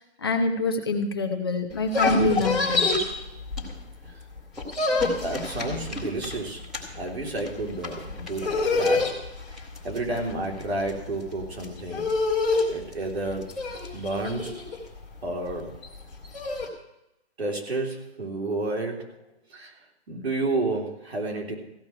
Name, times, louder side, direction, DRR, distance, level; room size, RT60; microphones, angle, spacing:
voice 1, 0.2-2.9, left 2 dB, 20° left, 4 dB, 0.9 m, -25 dB
sound 1, 1.7-4.1 4.4-16.7, left 3 dB, ahead, 1.0 m, -27 dB
voice 2, 5.1-6.6 7.0-9.2 9.8-12.1 12.7-13.6 13.9-14.6 15.2-15.7 17.4-19.1 19.5-19.7 20.1-21.5, right 2 dB, 70° right, 0 dB, 3.7 m, -30 dB
16.0 x 6.2 x 8.7 m, 0.87 s
hypercardioid pair, 180°, 33 cm